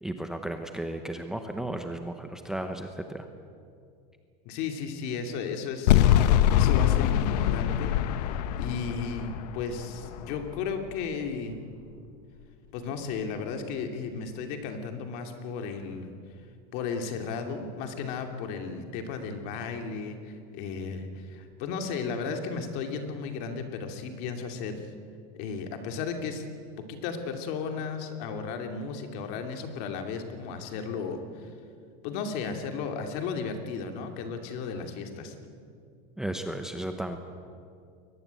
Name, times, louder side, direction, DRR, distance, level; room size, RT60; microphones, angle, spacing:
voice 1, 0.0-3.3 36.2-37.2, right 1 dB, 5° right, 5 dB, 0.8 m, -34 dB
voice 2, 4.4-6.1 6.5-7.9 8.6-11.6 12.7-16.1 16.7-24.9 25.3-26.5 26.9-31.5 32.0-35.3, left 5 dB, 50° left, 5 dB, 2.7 m, -34 dB
sound 1, 5.9-11.0, left 11 dB, 85° left, 1.0 m, -24 dB
22.0 x 19.5 x 8.3 m, 2.3 s
supercardioid pair, 170°, 20 cm